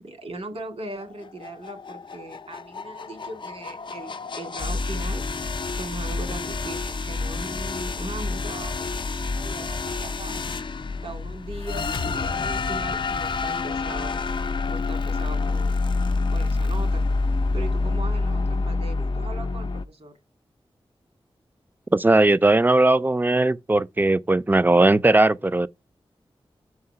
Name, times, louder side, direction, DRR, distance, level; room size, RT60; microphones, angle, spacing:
voice 1, 0.0-5.2 5.8-10.6 11.0-14.2 14.7-15.8 16.3-17.0 17.5-20.1, right 2 dB, 85° right, 2.2 m, -39 dB
sound 1, 1.0-19.8, left 3 dB, 55° left, 0.5 m, -28 dB
voice 2, 21.9-25.7, right 2 dB, 20° right, 0.4 m, -18 dB
5.7 x 4.8 x 5.5 m
wide cardioid pair, 80°, 10 cm